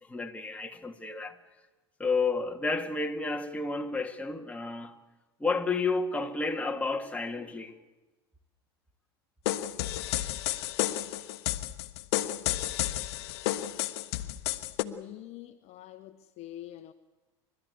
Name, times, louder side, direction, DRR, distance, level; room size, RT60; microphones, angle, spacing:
voice 1, 0.1-1.4 2.0-4.9 5.4-7.7, left 3 dB, 10° left, 2.2 m, -31 dB
sound 1, 9.5-14.8, left 14 dB, 70° left, 1.0 m, -31 dB
voice 2, 14.8-16.9, left 13 dB, 50° left, 1.1 m, -45 dB
29.0 x 12.5 x 8.4 m
hypercardioid pair, 90°, 14 cm